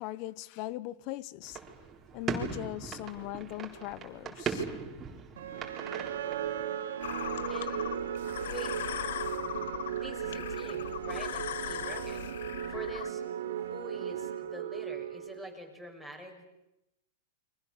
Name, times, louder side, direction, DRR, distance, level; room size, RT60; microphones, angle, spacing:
voice 1, 0.0-1.6 2.1-4.7, left 16 dB, 45° left, 1.0 m, -39 dB
sound 1, 1.4-6.6, right 6 dB, 20° right, 3.8 m, -39 dB
sound 2, 5.4-15.6, right 9 dB, 75° right, 2.4 m, -36 dB
sound 3, 7.0-13.1, left 11 dB, 70° left, 0.9 m, -39 dB
voice 2, 7.5-7.8 8.5-8.7 9.9-12.2 12.7-13.2 13.5-16.4, equal, 5° left, 6.2 m, -45 dB
30.0 x 24.0 x 6.9 m
hypercardioid pair, 135°, 0 cm